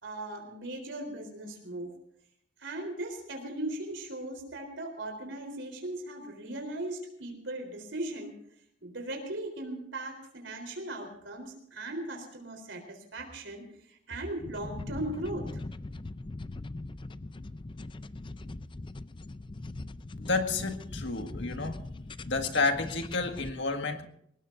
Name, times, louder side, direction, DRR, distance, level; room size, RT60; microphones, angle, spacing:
voice 1, 0.0-1.9 2.6-8.3 8.8-15.5, right 1 dB, 75° right, 3 dB, 4.0 m, -38 dB
sound 1, 14.4-23.5, left 2 dB, 25° left, 0.5 m, -41 dB
voice 2, 20.2-21.8 22.2-24.1, left 3 dB, 70° left, 5 dB, 1.9 m, -30 dB
23.5 x 19.5 x 2.7 m, 0.70 s
head